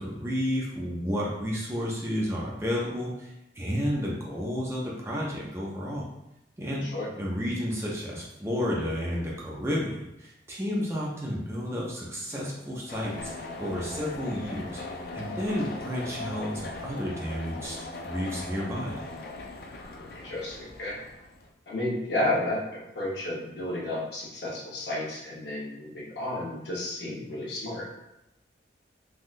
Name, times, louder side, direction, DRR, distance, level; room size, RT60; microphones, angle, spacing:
voice 1, 0.0-6.1 6.6-6.9 7.1-17.8 18.0-19.0, equal, 15° right, -4 dB, 0.4 m, -31 dB
sound 1, 12.9-21.5, left 2 dB, 55° left, 0.3 m, -39 dB
voice 2, 19.9-21.0 21.7-27.9, left 1 dB, 75° left, -6 dB, 1.0 m, -32 dB
3.5 x 2.3 x 2.5 m, 0.90 s
head